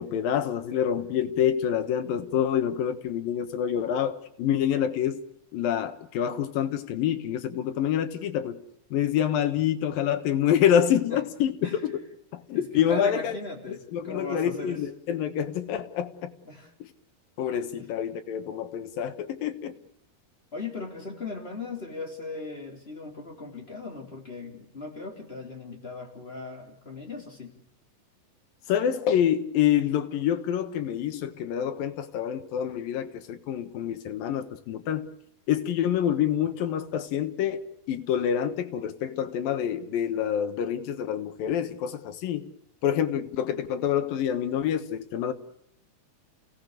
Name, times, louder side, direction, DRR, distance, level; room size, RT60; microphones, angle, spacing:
voice 1, 0.0-5.2 5.5-8.6 8.9-12.0 12.3-13.3 13.9-16.3 17.4-19.8 28.7-35.1 35.5-42.5 42.8-45.3, left 9 dB, 70° left, 2.9 m, -27 dB
voice 2, 11.6-12.0 12.5-14.8 16.4-16.7 17.7-17.9 20.5-27.5, left 3 dB, 15° left, 3.2 m, -38 dB
29.5 x 17.5 x 6.6 m
omnidirectional pair, 4.5 m